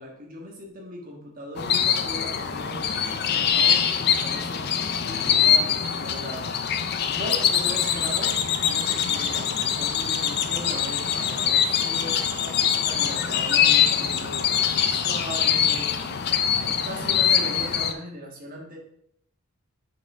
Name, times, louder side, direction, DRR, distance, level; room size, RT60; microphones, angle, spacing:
voice 1, 0.0-4.7 5.0-6.5 7.1-18.8, equal, 40° right, -1 dB, 1.6 m, -39 dB
sound 1, 1.6-17.9, left 8 dB, 45° left, 0.4 m, -23 dB
6.5 x 5.4 x 3.7 m, 0.71 s
head